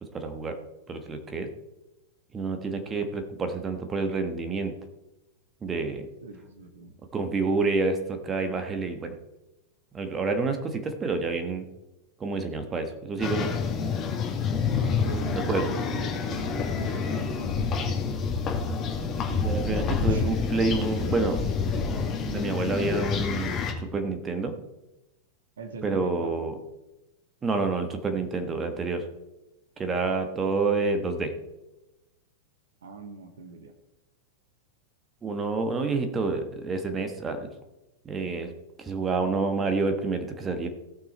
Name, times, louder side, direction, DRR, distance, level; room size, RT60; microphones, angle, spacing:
voice 1, 0.0-0.6 0.9-1.5 2.3-4.7 5.6-6.1 7.1-9.1 9.9-11.7 12.2-13.5 15.3-15.7 19.3-21.4 22.2-23.5 23.8-24.5 25.8-26.6 27.4-29.1 29.8-31.3 35.2-37.5 38.0-38.5 38.8-40.7, right 3 dB, 20° right, 7 dB, 1.4 m, -28 dB
voice 2, 6.2-6.9 14.7-17.9 20.1-20.2 25.6-26.4 32.8-33.7, right 4 dB, 65° right, 7 dB, 1.4 m, -41 dB
sound 1, 13.2-23.7, left 5 dB, 30° left, 2.1 m, -28 dB
17.5 x 6.1 x 4.4 m, 0.98 s
figure-of-eight pair, 90°, 0 cm